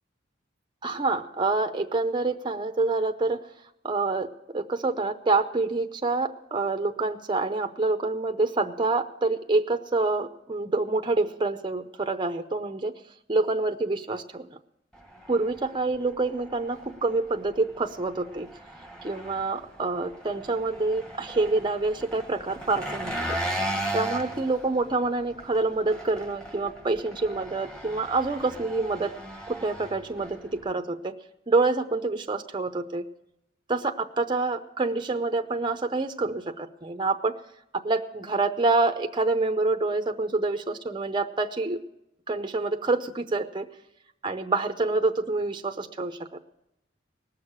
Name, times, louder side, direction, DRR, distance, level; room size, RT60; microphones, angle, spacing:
voice 1, 0.8-3.4 3.8-4.3 4.5-12.9 13.3-14.6 15.3-18.5 19.0-23.4 23.9-29.1 29.5-31.1 31.5-33.0 33.7-37.4 37.8-41.8 42.3-43.7 44.2-46.2, right 3 dB, 25° right, 6 dB, 0.7 m, -27 dB
Engine, 14.9-30.7, right 1 dB, 5° left, 1.5 m, -37 dB
19.0 x 6.5 x 8.6 m, 0.85 s
head